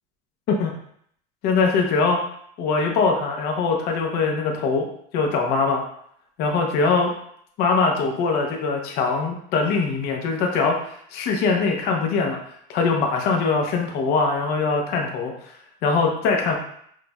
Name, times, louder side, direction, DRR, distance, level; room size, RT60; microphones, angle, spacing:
voice 1, 1.4-2.2 2.6-4.9 5.1-5.8 6.4-7.1 7.6-15.3 15.8-16.6, left 4 dB, 50° left, 1 dB, 0.8 m, -22 dB
6.0 x 2.5 x 2.3 m, 0.67 s
supercardioid pair, 135°, 21 cm